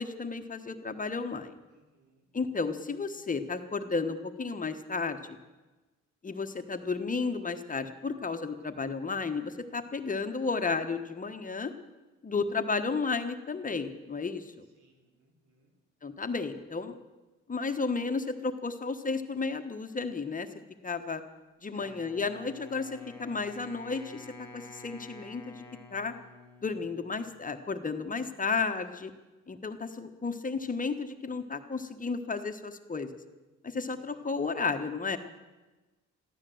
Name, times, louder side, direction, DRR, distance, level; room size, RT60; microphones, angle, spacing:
voice 1, 0.0-1.6 2.3-5.4 6.2-11.7 12.2-14.6 16.0-17.0 17.5-20.5 20.8-21.2 21.6-25.6 25.9-26.1 26.6-29.1 29.5-33.1 33.6-35.2, left 4 dB, 25° left, 7 dB, 1.2 m, -33 dB
voice 2, 1.7-2.3 14.8-15.7 21.7-22.0 33.7-34.3, equal, 80° right, 2 dB, 4.2 m, -61 dB
Wind instrument woodwind instrument, 21.8-27.7, left 3 dB, 5° left, 2.7 m, -51 dB
14.5 x 12.5 x 7.8 m, 1.2 s
cardioid pair, 90°, 30 cm